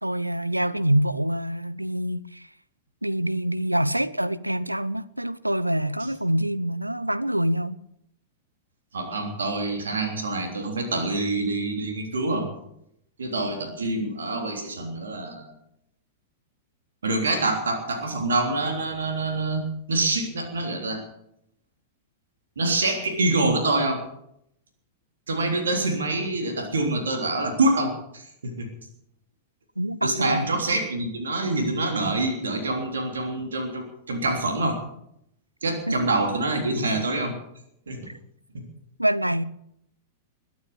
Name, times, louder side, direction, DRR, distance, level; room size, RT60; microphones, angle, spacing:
voice 1, 0.0-2.5 3.0-7.8 29.8-30.5 35.9-36.0 39.0-39.4, right 1 dB, 90° right, 0.7 m, -25 dB
voice 2, 8.9-12.5 13.2-15.5 17.0-21.0 22.6-24.0 25.3-28.7 30.0-34.8 35.6-37.3 37.9-38.1 38.5-38.6, right 2 dB, 70° right, 3.4 m, -26 dB
21.0 x 9.4 x 7.1 m
figure-of-eight pair, 95°, 0 cm